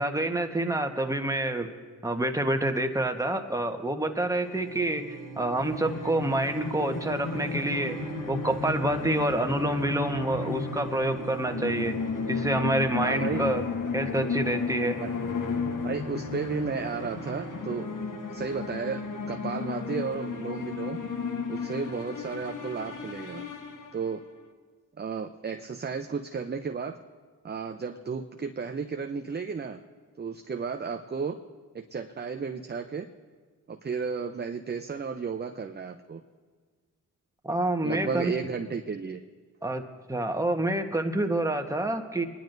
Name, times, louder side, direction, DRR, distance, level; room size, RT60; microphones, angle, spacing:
voice 1, 0.0-1.7 2.0-8.0 8.3-12.0 12.3-13.6 13.9-15.0 37.4-38.3 39.6-39.8 40.1-42.3, right 1 dB, 10° right, 5 dB, 1.2 m, -27 dB
sound 1, 4.4-24.0, right 5 dB, 60° right, 1.2 m, -42 dB
sound 2, 5.5-24.3, left 6 dB, 50° left, 1.2 m, -34 dB
voice 2, 13.0-13.5 15.0-15.1 15.8-17.9 18.3-21.0 21.5-23.5 23.9-24.2 25.0-27.0 27.4-29.8 30.2-31.4 31.7-33.1 33.7-36.2 37.8-39.2, right 5 dB, 25° right, 6 dB, 0.7 m, -33 dB
25.0 x 10.5 x 2.7 m, 1.5 s
supercardioid pair, 45°, 38 cm